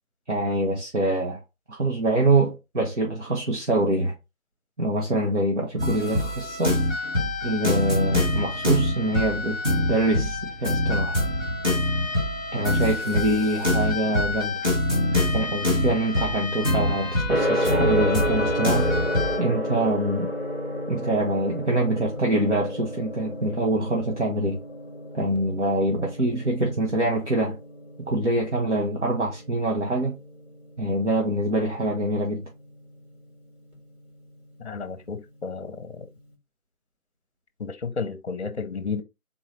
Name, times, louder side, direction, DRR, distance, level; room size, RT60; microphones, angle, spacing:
voice 1, 0.3-1.4 1.7-4.1 4.8-6.8 7.4-9.6 9.9-11.2 12.5-14.6 15.3-18.9 19.4-20.3 20.9-24.6 25.1-27.6 28.0-30.2 30.8-32.4, right 1 dB, 55° right, 1.2 m, -25 dB
sound 1, 5.8-19.4, left 1 dB, 15° right, 1.4 m, -25 dB
Gong, 17.3-36.2, equal, 70° right, 2.9 m, -32 dB
voice 2, 34.6-36.1 37.6-39.0, left 4 dB, 50° left, 0.7 m, -32 dB
4.0 x 3.7 x 2.9 m
figure-of-eight pair, 160°, 44 cm